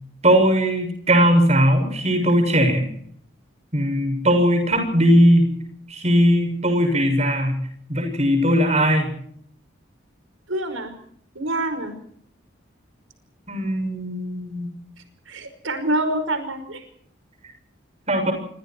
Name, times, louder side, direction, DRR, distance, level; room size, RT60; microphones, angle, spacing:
voice 1, 0.2-2.9 3.7-5.5 5.9-7.6 7.9-9.1 13.5-14.7 18.1-18.3, equal, 35° right, 6 dB, 7.0 m, -19 dB
voice 2, 10.5-10.9 11.4-11.9 15.3-16.8, right 1 dB, 90° right, 9 dB, 5.2 m, -26 dB
27.5 x 25.0 x 4.7 m, 0.65 s
head